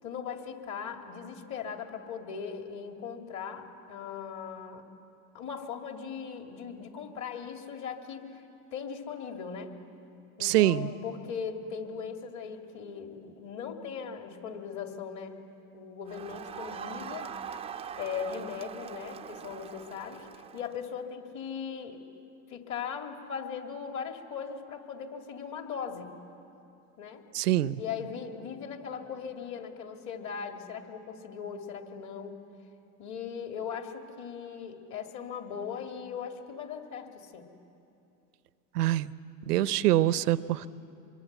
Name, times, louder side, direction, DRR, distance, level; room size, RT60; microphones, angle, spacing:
voice 1, 0.0-4.8 5.3-9.7 10.4-15.4 15.7-17.3 18.0-22.0 22.5-26.1 27.0-27.2 27.8-32.4 33.0-37.5, left 6 dB, 40° left, 4 dB, 2.6 m, -39 dB
voice 2, 10.4-10.9 27.3-27.8 38.7-39.1 39.5-40.7, right 14 dB, 80° right, 17 dB, 0.8 m, -25 dB
Crowd, 16.1-20.9, right 7 dB, 15° right, 0.6 m, -42 dB
24.5 x 23.0 x 8.1 m, 2.8 s
hypercardioid pair, 110°, 46 cm